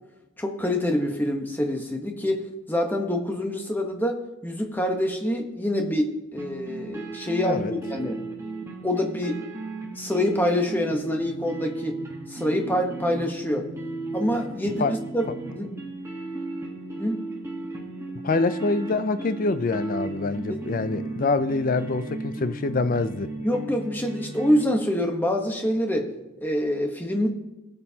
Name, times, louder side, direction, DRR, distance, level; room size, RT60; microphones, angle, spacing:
voice 1, 0.4-8.2 8.8-9.4 10.0-11.9 12.3-13.7 14.1-15.7 17.0-17.2 20.5-20.6 23.4-26.1 26.4-27.3, left 1 dB, 10° left, 1.0 m, -26 dB
sound 1, 6.4-24.6, right 2 dB, 10° right, 1.3 m, -35 dB
voice 2, 18.2-23.3, left 3 dB, 40° left, 0.4 m, -25 dB
17.5 x 7.8 x 2.8 m
head